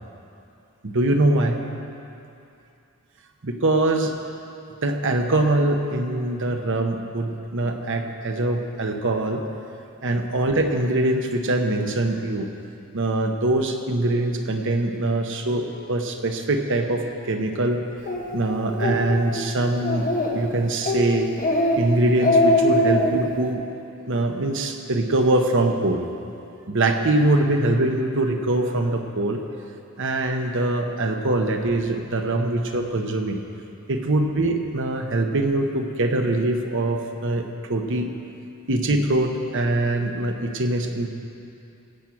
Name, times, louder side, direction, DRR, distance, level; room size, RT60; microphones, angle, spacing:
voice 1, 0.8-1.6 3.4-4.1 4.8-9.4 10.0-12.5 12.9-17.8 18.3-21.3 21.6-23.6 24.1-26.0 26.7-29.4 30.0-33.4 33.9-38.1 38.7-41.1, right 2 dB, 60° right, 4 dB, 1.1 m, -23 dB
Speech, 18.1-18.2 18.7-19.0 19.3-19.4 19.8-20.4 20.8-21.0 21.4-21.8 22.1-23.1, left 1 dB, 40° left, 1.5 m, -20 dB
15.0 x 6.3 x 8.5 m, 2.7 s
head